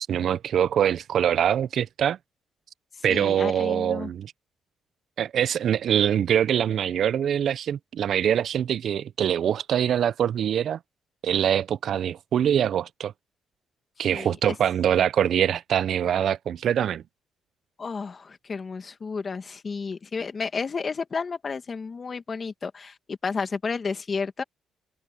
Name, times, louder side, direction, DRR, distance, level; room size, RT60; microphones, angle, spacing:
voice 1, 0.1-2.2 3.0-4.3 5.2-10.8 11.2-13.1 14.0-17.0, right 9 dB, 65° right, 0.5 m, -24 dB
voice 2, 3.1-4.1 14.1-14.4 17.8-24.4, left 5 dB, 40° left, 2.1 m, -32 dB
cardioid pair, 90°, 0 cm